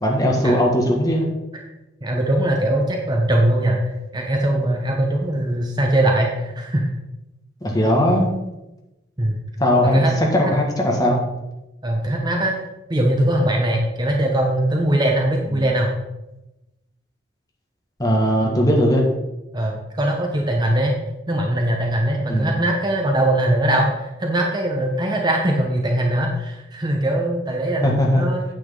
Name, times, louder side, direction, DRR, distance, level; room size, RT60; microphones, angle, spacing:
voice 1, 0.0-1.3 7.6-8.3 9.6-10.1 10.3-11.2 15.5-15.6 18.0-19.0 22.3-22.5 27.8-28.2, equal, 20° left, -1 dB, 1.8 m, -18 dB
voice 2, 2.0-3.8 4.1-6.9 9.2-9.4 9.8-10.3 11.8-12.5 12.9-15.9 18.4-18.6 19.5-20.9 21.3-28.5, right 1 dB, 20° right, 1 dB, 1.0 m, -21 dB
9.2 x 8.5 x 3.9 m, 0.98 s
head